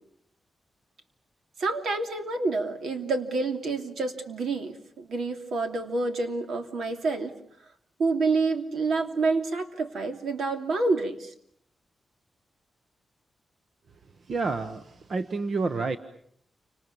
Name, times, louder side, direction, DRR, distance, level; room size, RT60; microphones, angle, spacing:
voice 1, 1.6-7.3 8.0-11.3, right 3 dB, 75° right, 6 dB, 2.9 m, -28 dB
voice 2, 14.3-16.0, right 3 dB, 45° right, 10 dB, 1.1 m, -29 dB
29.5 x 26.5 x 7.0 m, 0.66 s
wide cardioid pair, 170°, 0 cm